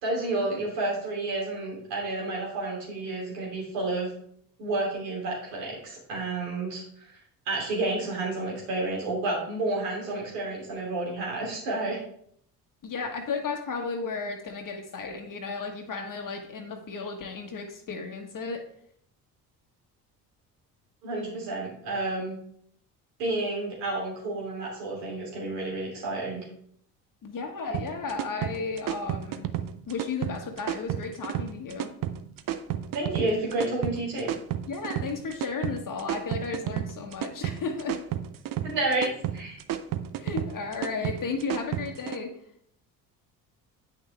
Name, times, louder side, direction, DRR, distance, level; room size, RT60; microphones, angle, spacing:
voice 1, 0.0-4.1 4.6-6.8 7.5-12.0 21.0-22.4 23.2-26.4 32.9-34.3 38.6-39.6, right 2 dB, 80° right, -4 dB, 3.0 m, -30 dB
voice 2, 12.8-18.6 27.2-29.5 29.9-31.9 34.7-38.0 40.2-42.3, left 4 dB, 40° left, 3 dB, 1.4 m, -34 dB
sound 1, 27.7-42.2, right 11 dB, 45° right, 0.7 m, -32 dB
8.7 x 6.1 x 3.3 m, 0.66 s
hypercardioid pair, 55°, 48 cm